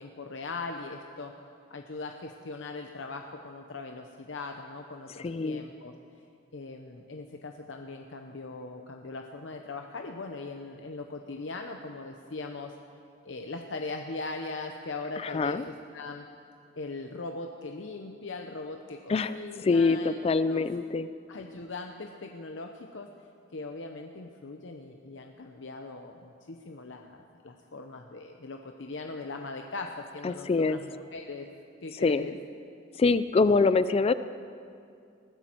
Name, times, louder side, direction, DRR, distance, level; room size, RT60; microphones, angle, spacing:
voice 1, 0.0-1.4 1.7-5.9 6.5-12.7 13.2-16.3 16.8-20.2 20.5-20.6 21.3-23.1 23.5-31.5 31.8-32.4, left 3 dB, 85° left, 4 dB, 0.8 m, -40 dB
voice 2, 5.2-5.6 15.2-15.6 19.1-19.3 19.6-21.1 30.2-30.8 32.0-32.3 33.0-34.1, left 4 dB, 30° left, 14 dB, 0.3 m, -24 dB
20.5 x 14.5 x 4.5 m, 2.4 s
head